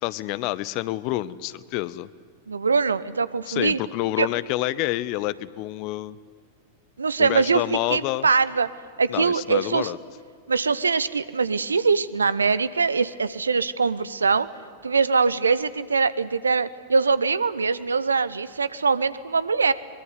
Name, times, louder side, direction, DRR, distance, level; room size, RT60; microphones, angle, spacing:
voice 1, 0.0-2.1 3.5-6.2 7.2-8.3 9.1-10.0, left 17 dB, 45° left, 18 dB, 0.9 m, -28 dB
voice 2, 2.5-3.8 4.2-4.3 7.0-7.6 7.9-8.7 9.0-9.9 10.5-14.5 14.8-19.7, right 4 dB, 75° right, 16 dB, 0.9 m, -22 dB
23.5 x 22.0 x 9.6 m, 2.1 s
figure-of-eight pair, 90°, 0 cm